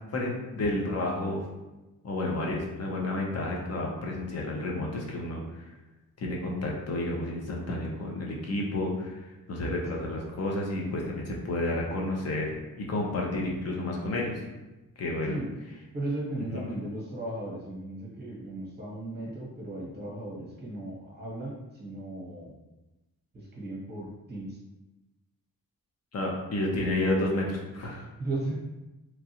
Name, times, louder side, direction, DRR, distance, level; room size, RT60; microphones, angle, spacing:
voice 1, 0.1-1.4 2.0-5.7 6.2-14.4 15.0-15.4 16.5-16.6 26.1-28.0, left 1 dB, 45° left, -1 dB, 0.7 m, -31 dB
voice 2, 15.9-22.5 23.3-24.6 27.9-28.5, right 2 dB, 30° right, -4 dB, 1.0 m, -36 dB
3.0 x 2.4 x 2.8 m, 1.1 s
wide cardioid pair, 150°, 35 cm